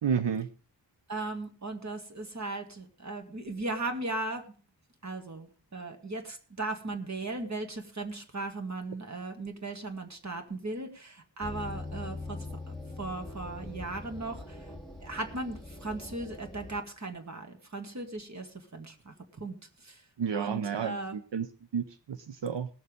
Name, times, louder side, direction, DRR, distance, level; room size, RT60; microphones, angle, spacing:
voice 1, 0.0-0.5 20.2-21.5 21.7-22.7, right 7 dB, 75° right, 11 dB, 0.7 m, -31 dB
voice 2, 1.1-4.4 5.0-12.4 13.0-14.6 15.0-19.6 19.8-20.0 20.3-21.2, right 2 dB, 40° right, 6 dB, 2.0 m, -37 dB
sound 1, 11.4-16.8, left 2 dB, ahead, 2.0 m, -42 dB
18.5 x 6.9 x 5.1 m, 0.38 s
wide cardioid pair, 105°, 44 cm